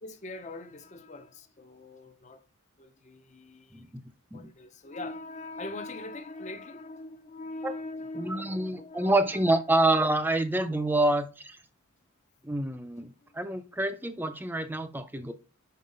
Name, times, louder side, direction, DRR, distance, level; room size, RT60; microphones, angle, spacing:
voice 1, 0.0-2.4 2.8-3.9 4.3-9.4 13.2-13.3, left 2 dB, 35° left, 0.6 m, -42 dB
voice 2, 8.1-11.6 12.4-15.3, right 2 dB, 10° right, 0.4 m, -27 dB
5.5 x 4.7 x 3.8 m
head